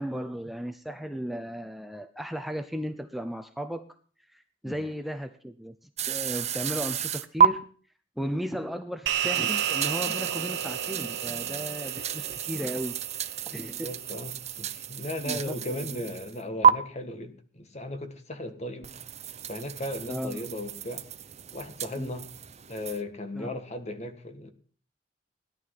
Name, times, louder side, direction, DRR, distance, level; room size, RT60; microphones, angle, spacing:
voice 1, 0.0-3.9 4.3-7.6 8.2-13.0 13.5-13.9 15.2-16.0 20.1-20.5 22.0-22.1 23.3-23.6, equal, ahead, 0.7 m, -35 dB
sound 1, 6.0-7.5 9.2-16.4 16.6-16.7 18.8-23.0, right 8 dB, 35° right, 0.8 m, -30 dB
sound 2, 9.1-13.7, right 10 dB, 70° right, 1.1 m, -32 dB
voice 2, 13.5-18.9 19.5-21.1 21.5-22.3 22.7-24.5, left 1 dB, 40° left, 1.7 m, -36 dB
17.0 x 11.0 x 5.7 m
head